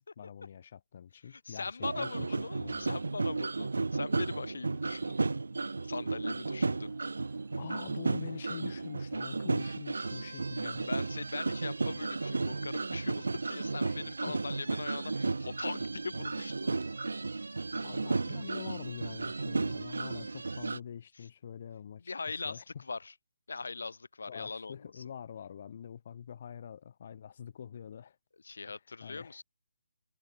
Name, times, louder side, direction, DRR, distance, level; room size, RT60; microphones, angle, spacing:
voice 1, 0.0-3.0 7.6-10.9 13.8-14.4 17.2-17.3 17.8-22.1 22.5-22.8 24.3-28.2 28.6-29.4, left 8 dB, 45° left, 2.0 m, -46 dB
voice 2, 1.3-5.3 5.8-6.9 10.6-16.7 22.1-23.1 23.5-25.0 28.4-29.4, left 4 dB, 80° left, 0.9 m, -41 dB
sound 1, 1.8-20.8, right 3 dB, 85° right, 0.7 m, -34 dB
sound 2, 1.9-18.1, right 13 dB, 30° right, 7.9 m, -65 dB
hypercardioid pair, 160°, 0 cm